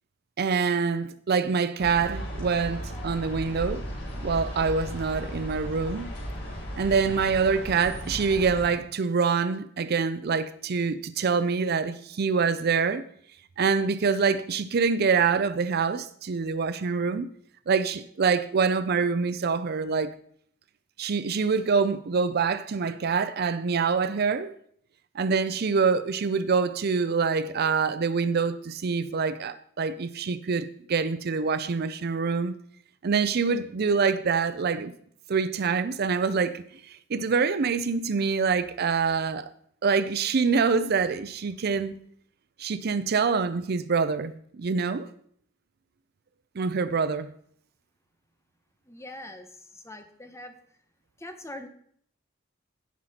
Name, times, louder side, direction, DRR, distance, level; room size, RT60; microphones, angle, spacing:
voice 1, 0.4-3.8 4.2-6.1 6.8-13.0 13.6-17.3 17.7-20.1 21.0-24.5 25.1-32.5 33.0-34.9 35.3-39.5 39.8-42.0 42.6-45.1 46.6-47.3, right 5 dB, 50° right, 0.5 m, -25 dB
sound 1, 1.8-8.7, equal, 60° left, 4.9 m, -36 dB
voice 2, 48.9-50.5 51.2-51.7, left 1 dB, 15° left, 1.1 m, -42 dB
16.5 x 5.8 x 4.3 m
head